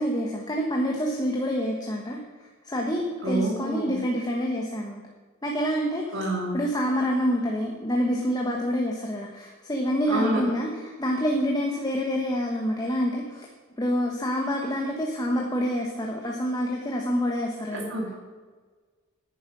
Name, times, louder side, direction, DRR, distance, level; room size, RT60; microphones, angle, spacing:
voice 1, 0.0-2.2 2.6-5.0 5.4-6.2 6.5-10.7 11.0-13.5 13.8-17.9, equal, 20° left, 0 dB, 1.3 m, -27 dB
voice 2, 3.2-4.0 6.1-6.6 10.1-10.4 17.7-18.1, right 1 dB, 60° right, -1 dB, 2.9 m, -28 dB
10.5 x 10.0 x 6.2 m, 1.4 s
head